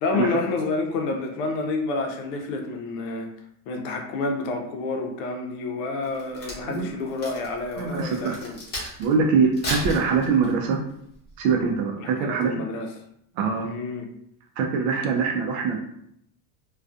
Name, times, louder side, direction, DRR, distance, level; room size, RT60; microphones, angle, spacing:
voice 1, 0.0-3.3 3.7-8.6 12.0-12.9 13.6-14.1, left 3 dB, 70° left, 3 dB, 0.6 m, -29 dB
Crack, 6.0-9.1 9.5-10.7 11.3-11.5, left 1 dB, 25° left, 0.8 m, -34 dB
voice 2, 7.8-8.4 8.8-10.8 11.4-12.6 13.4-13.7 14.6-15.8, right 5 dB, 70° right, 1 dB, 0.5 m, -23 dB
2.3 x 2.3 x 2.5 m, 0.72 s
cardioid pair, 150°, 41 cm